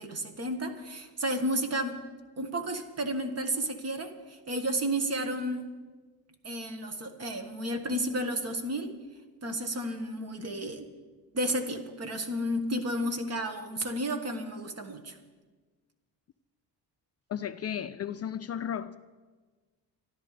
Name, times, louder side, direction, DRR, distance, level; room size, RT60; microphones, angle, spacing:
voice 1, 0.0-2.0 2.4-5.7 6.4-8.9 9.4-10.9 11.3-15.2, right 1 dB, 40° right, 6 dB, 1.6 m, -32 dB
voice 2, 17.3-19.0, left 9 dB, 40° left, 10 dB, 0.4 m, -34 dB
25.0 x 12.5 x 3.3 m, 1.3 s
cardioid pair, 130°, 40 cm